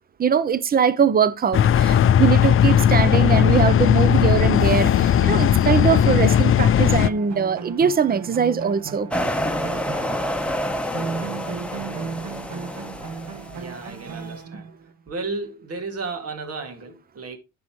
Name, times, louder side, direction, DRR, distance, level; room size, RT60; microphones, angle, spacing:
voice 1, 0.2-9.4, right 7 dB, 30° right, 0.7 m, -22 dB
sound 1, 1.5-7.1, left 9 dB, 45° left, 0.5 m, -17 dB
sound 2, 4.3-10.7 10.9-14.9, right 5 dB, 70° right, 1.4 m, -35 dB
sound 3, 9.1-14.1, equal, 5° left, 1.1 m, -28 dB
voice 2, 13.5-14.7 15.1-17.4, right 3 dB, 50° right, 2.5 m, -33 dB
9.5 x 7.1 x 3.2 m
cardioid pair, 90°, 30 cm